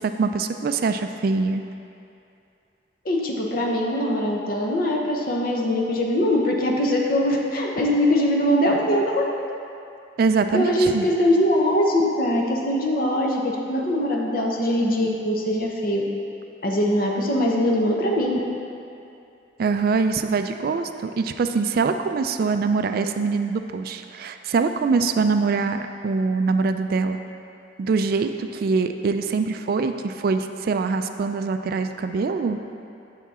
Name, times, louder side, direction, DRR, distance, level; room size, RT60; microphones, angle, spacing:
voice 1, 0.0-1.6 10.2-11.1 19.6-27.2 27.8-32.6, right 4 dB, 50° right, 8 dB, 0.3 m, -23 dB
voice 2, 3.0-9.2 10.5-16.0 16.6-18.4, left 1 dB, 50° left, -1 dB, 0.9 m, -22 dB
7.3 x 6.0 x 4.2 m, 2.6 s
head